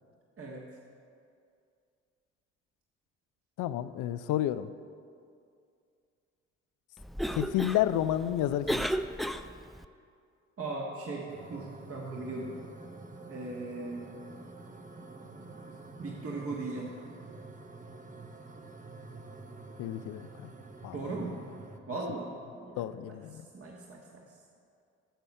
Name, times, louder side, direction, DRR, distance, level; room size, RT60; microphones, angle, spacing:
voice 1, 0.4-0.7 10.6-12.6 13.3-14.1 15.4-16.9 20.9-21.4 21.9-24.4, right 2 dB, 45° right, -2 dB, 1.5 m, -39 dB
voice 2, 3.6-4.7 7.3-8.9 19.8-20.5 20.8-21.0 22.8-23.5, left 12 dB, 70° left, 14 dB, 0.5 m, -30 dB
Cough, 7.0-9.9, equal, ahead, 0.3 m, -34 dB
sound 1, 11.3-21.8, right 3 dB, 25° right, 1.0 m, -48 dB
10.0 x 7.0 x 5.4 m, 2.3 s
hypercardioid pair, 50°, 32 cm